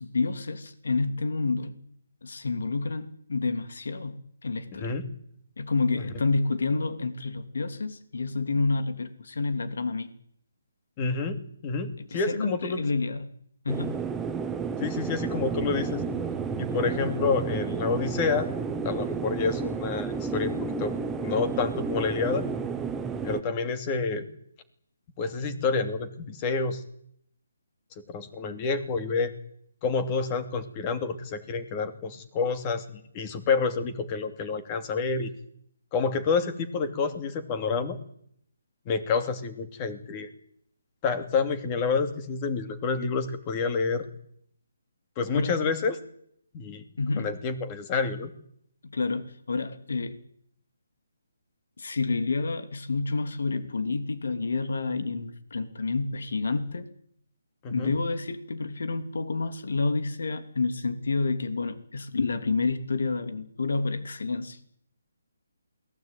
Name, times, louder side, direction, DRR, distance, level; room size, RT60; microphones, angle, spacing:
voice 1, 0.0-1.8 2.2-5.0 5.6-10.1 12.0-13.3 13.6-13.9 14.9-15.1 45.3-45.6 47.0-47.3 48.8-50.2 51.8-56.9 57.7-64.8, left 3 dB, 75° left, 10 dB, 3.1 m, -29 dB
voice 2, 4.7-5.0 11.0-12.8 14.8-16.0 16.6-18.5 18.8-20.9 21.2-22.5 23.2-24.3 25.2-26.8 28.1-29.3 29.8-35.3 35.9-38.0 38.9-40.3 41.0-44.1 45.2-46.0 46.5-46.9 47.2-48.3 57.6-57.9, left 4 dB, 20° left, 9 dB, 2.8 m, -28 dB
sound 1, 13.7-23.4, right 5 dB, 5° right, 1.1 m, -31 dB
28.0 x 20.0 x 9.3 m, 0.69 s
hypercardioid pair, 165°, 0 cm